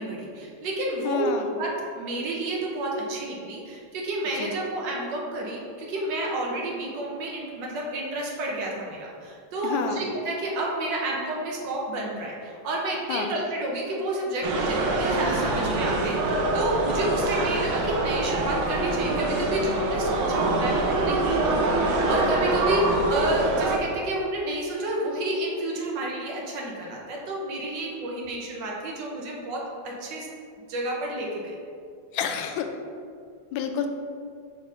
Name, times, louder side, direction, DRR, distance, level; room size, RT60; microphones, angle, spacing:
voice 1, 0.0-1.3 1.6-1.7 1.9-30.3 30.7-31.5, right 1 dB, 70° right, -2 dB, 1.5 m, -30 dB
voice 2, 1.0-1.5 4.4-4.5 9.6-10.1 13.1-13.3 32.1-32.7 33.5-33.9, left 7 dB, 80° left, 5 dB, 1.3 m, -29 dB
sound 1, 14.4-23.8, right 2 dB, 85° right, 1.6 m, -25 dB
5.2 x 4.1 x 4.9 m, 2.3 s
omnidirectional pair, 2.2 m